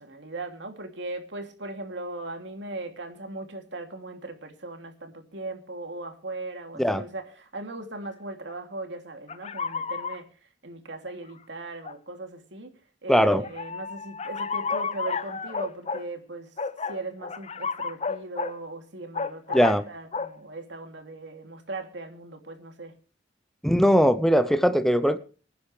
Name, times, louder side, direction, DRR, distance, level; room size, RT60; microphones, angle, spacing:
voice 1, 0.0-12.7 13.0-16.5 16.9-22.9, right 2 dB, 75° right, 5 dB, 2.8 m, -38 dB
sound 1, 8.5-8.6 9.3-10.2 11.1-11.2 11.8-11.9 13.4-16.0 16.6-18.6 19.1-19.8 20.1-20.4, left 5 dB, 35° left, 0.7 m, -31 dB
voice 2, 13.1-13.4 19.5-19.8 23.6-25.2, equal, ahead, 12 dB, 0.7 m, -20 dB
25.5 x 10.0 x 3.3 m, 0.37 s
head